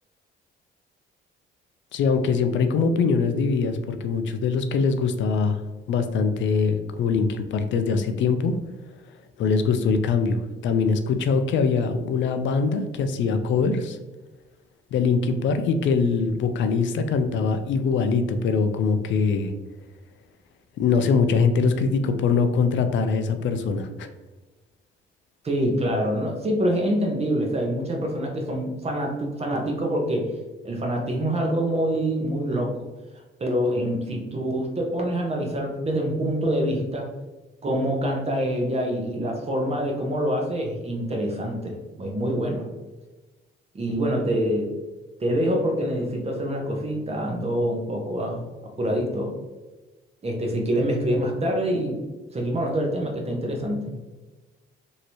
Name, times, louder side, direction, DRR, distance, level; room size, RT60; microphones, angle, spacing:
voice 1, 1.9-5.6 5.9-8.6 9.4-14.0 14.9-19.5 20.8-24.1, left 5 dB, 70° left, 8 dB, 0.4 m, -23 dB
voice 2, 25.4-30.3 30.6-32.8 33.4-37.1 37.6-42.7 43.7-44.7 45.2-49.3 50.2-52.0 52.3-53.9, equal, 30° right, 1 dB, 0.9 m, -25 dB
3.0 x 2.7 x 2.9 m, 1.2 s
cardioid pair, 90°, 20 cm